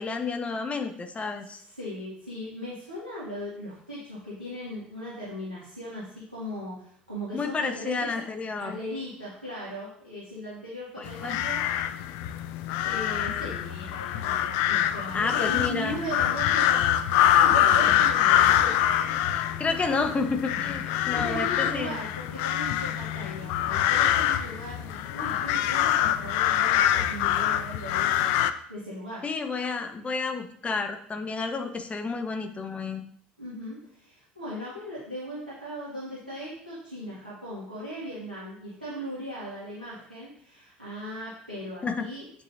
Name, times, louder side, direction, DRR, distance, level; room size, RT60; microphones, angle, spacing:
voice 1, 0.0-1.6 7.3-8.7 11.0-11.4 15.1-16.0 19.3-22.0 29.2-33.0 41.8-42.1, left 4 dB, 25° left, 6 dB, 1.2 m, -30 dB
voice 2, 1.4-8.1 8.6-11.7 12.8-16.9 17.3-19.1 20.5-28.3 28.7-29.2 33.4-42.4, equal, 90° right, -10 dB, 2.1 m, -38 dB
sound 1, 11.1-28.5, left 11 dB, 55° left, 0.5 m, -25 dB
8.1 x 7.8 x 2.7 m, 0.63 s
figure-of-eight pair, 60°, 5 cm